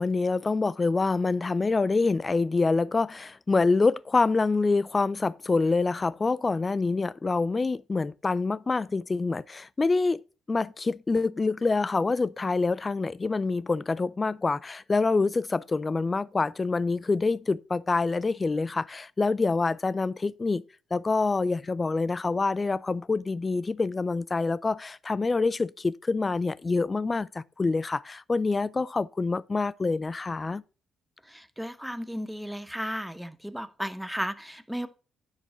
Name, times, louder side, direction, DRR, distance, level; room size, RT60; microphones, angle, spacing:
voice 1, 0.0-10.2 10.5-20.6 20.9-30.6, left 3 dB, 25° left, 0.4 m, -26 dB
voice 2, 31.2-34.9, equal, ahead, 0.8 m, -34 dB
10.0 x 6.5 x 3.9 m
cardioid pair, 90°, 0 cm